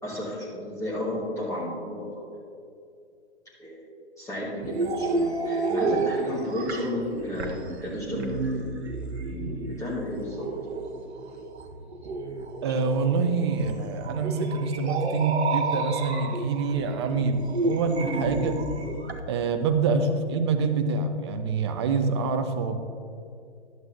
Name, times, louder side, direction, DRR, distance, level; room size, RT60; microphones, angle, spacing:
voice 1, 0.0-2.4 3.6-3.9 4.2-8.7 9.3-10.5, left 1 dB, 10° left, -8 dB, 1.4 m, -33 dB
sound 1, 4.6-19.2, right 3 dB, 65° right, 1.0 m, -31 dB
voice 2, 12.6-18.6 19.3-22.8, right 4 dB, 25° right, 8 dB, 0.5 m, -26 dB
12.0 x 7.8 x 2.7 m, 2.4 s
figure-of-eight pair, 125°, 35 cm